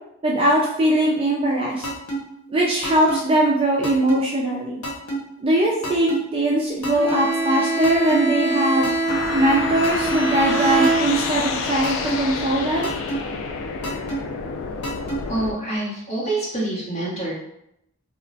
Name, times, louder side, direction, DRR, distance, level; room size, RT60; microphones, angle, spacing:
voice 1, 0.2-1.8 2.5-4.8 5.4-8.9 9.3-12.9, right 1 dB, 25° right, -3 dB, 0.3 m, -21 dB
sound 1, 1.8-2.2 2.8-3.2 3.8-4.2 4.8-5.2 5.8-6.2 6.8-7.2 7.8-8.2 8.8-9.2 9.8-10.2 10.8-11.2 11.8-12.2 12.8-13.2 13.8-14.2 14.8-15.2, right 2 dB, 90° left, 0.8 m, -27 dB
Bowed string instrument, 6.9-11.6, right 2 dB, 60° right, 0.8 m, -24 dB
sound 2, 9.1-15.5, left 4 dB, 60° left, 0.3 m, -29 dB
voice 2, 15.3-17.3, right 2 dB, 30° left, -7 dB, 1.0 m, -26 dB
2.3 x 2.1 x 3.8 m, 0.78 s
head